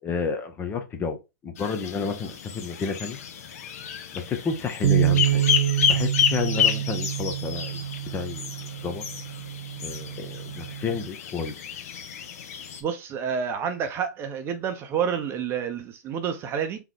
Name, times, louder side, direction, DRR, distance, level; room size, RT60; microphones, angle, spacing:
voice 1, 0.0-1.2 1.4-3.2 4.1-5.4 5.8-8.5 8.8-9.0 9.8-11.6, left 5 dB, 20° left, 0.7 m, -31 dB
sound 1, 1.6-12.8, left 8 dB, 55° left, 1.0 m, -30 dB
Bass guitar, 4.8-11.1, right 12 dB, 55° right, 0.4 m, -27 dB
voice 2, 12.8-16.8, right 7 dB, 25° right, 0.7 m, -29 dB
3.7 x 3.1 x 3.4 m
hypercardioid pair, 130°, 9 cm